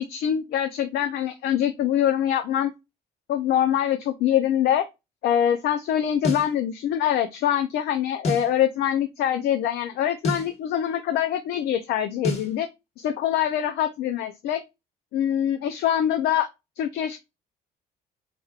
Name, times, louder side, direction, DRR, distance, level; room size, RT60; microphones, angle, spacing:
voice 1, 0.0-2.7 3.3-4.9 5.2-12.7 13.0-14.6 15.1-16.5 16.8-17.2, left 10 dB, 70° left, 0.5 m, -24 dB
sound 1, 6.2-6.5 8.2-8.5 10.2-10.5 12.2-12.5, left 1 dB, 40° left, 1.4 m, -27 dB
4.7 x 3.0 x 2.3 m
cardioid pair, 110°, 17 cm